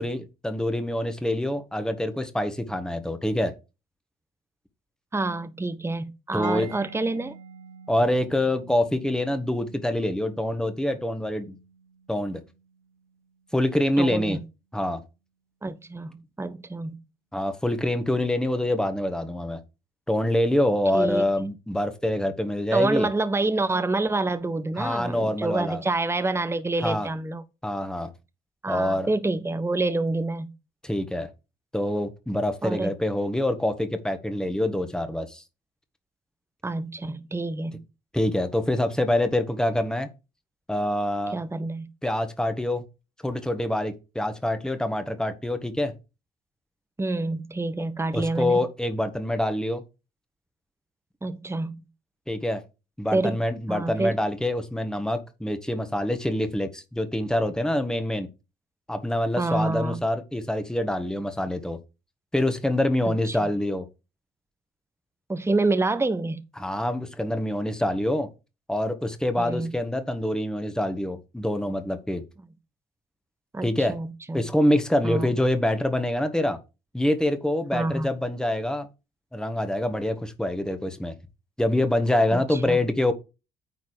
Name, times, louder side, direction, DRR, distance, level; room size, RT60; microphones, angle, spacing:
voice 1, 0.0-3.5 6.3-6.7 7.9-11.5 12.1-12.4 13.5-14.4 14.7-15.0 17.3-19.6 20.1-23.1 24.8-25.8 26.8-27.1 27.6-28.1 28.7-29.1 30.8-31.3 31.7-35.4 38.1-40.1 40.7-41.4 42.0-42.8 43.2-45.9 48.1-49.8 52.3-52.6 53.0-58.3 58.9-61.8 62.3-63.8 66.6-68.3 68.7-72.2 73.6-73.9 74.3-76.6 76.9-78.9 79.3-81.1 81.6-83.1, left 1 dB, 5° left, 1.6 m, -25 dB
voice 2, 5.1-7.4 14.0-14.4 15.6-17.0 20.9-21.2 22.7-27.4 28.6-30.5 32.6-32.9 36.6-37.8 41.3-41.9 47.0-48.6 51.2-51.7 53.1-53.4 53.7-54.2 59.4-60.0 63.3-63.5 65.3-66.4 69.4-69.7 73.5-74.4 75.0-75.3 77.7-78.1 82.3-82.8, right 2 dB, 10° right, 1.0 m, -27 dB
Mallet percussion, 6.4-14.0, right 6 dB, 80° right, 1.9 m, -49 dB
9.6 x 4.1 x 4.9 m
hypercardioid pair, 50°, 21 cm